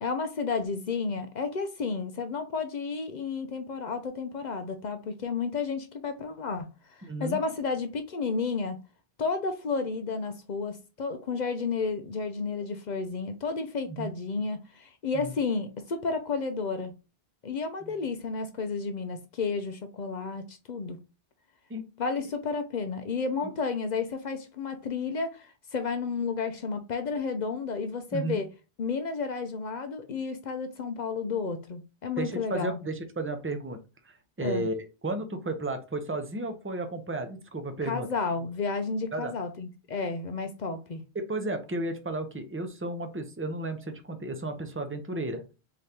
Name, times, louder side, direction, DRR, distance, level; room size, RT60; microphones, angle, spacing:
voice 1, 0.0-8.8 9.2-16.9 17.4-21.0 22.0-28.5 28.8-32.8 34.4-34.7 37.8-41.0, left 4 dB, 50° left, 0.6 m, -32 dB
voice 2, 7.1-7.4 13.9-14.2 15.1-15.3 17.8-17.9 21.7-21.8 28.1-28.4 32.2-33.8 34.1-38.1 39.1-39.3 41.1-45.4, right 2 dB, 15° right, 0.5 m, -33 dB
3.8 x 3.3 x 2.8 m
omnidirectional pair, 1.1 m